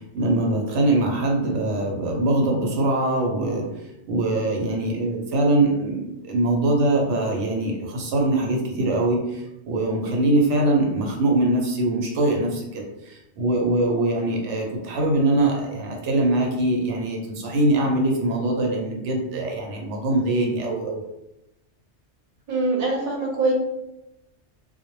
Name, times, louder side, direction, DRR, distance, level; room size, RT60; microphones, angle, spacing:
voice 1, 0.1-3.6 4.1-21.0, right 2 dB, 85° right, 0 dB, 0.9 m, -23 dB
voice 2, 22.5-23.5, right 3 dB, 50° right, -1 dB, 0.7 m, -23 dB
2.1 x 2.0 x 3.0 m, 0.88 s
omnidirectional pair, 1.2 m